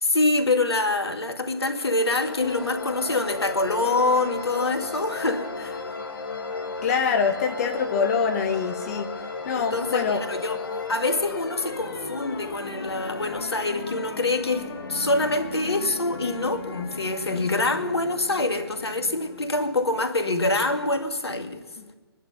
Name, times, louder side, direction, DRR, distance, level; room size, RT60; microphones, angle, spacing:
voice 1, 0.0-5.8 9.6-10.6 10.9-21.6, left 2 dB, 75° left, 6 dB, 2.0 m, -25 dB
sound 1, 1.5-20.1, left 4 dB, 55° left, 2.0 m, -35 dB
voice 2, 6.8-9.1 9.4-10.2 21.8-21.9, left 6 dB, 35° left, 4 dB, 1.4 m, -25 dB
23.5 x 10.5 x 5.7 m, 1.3 s
figure-of-eight pair, 140°, 13 cm